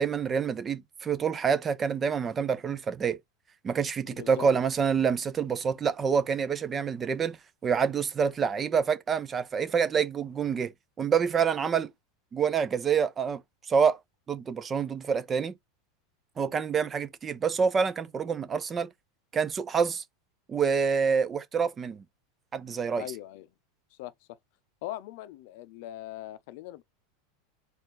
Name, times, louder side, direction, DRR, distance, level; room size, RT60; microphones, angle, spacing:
voice 1, 0.0-3.2 3.6-7.4 7.6-10.7 11.0-11.9 12.3-13.4 13.7-14.0 14.3-15.5 16.4-18.9 19.3-20.0 20.5-22.0 22.5-23.0, right 6 dB, 25° right, 0.7 m, -27 dB
voice 2, 4.1-4.5 23.0-23.5 24.0-24.1 24.8-26.8, left 14 dB, 65° left, 0.6 m, -40 dB
4.3 x 2.6 x 4.0 m
hypercardioid pair, 110°, 0 cm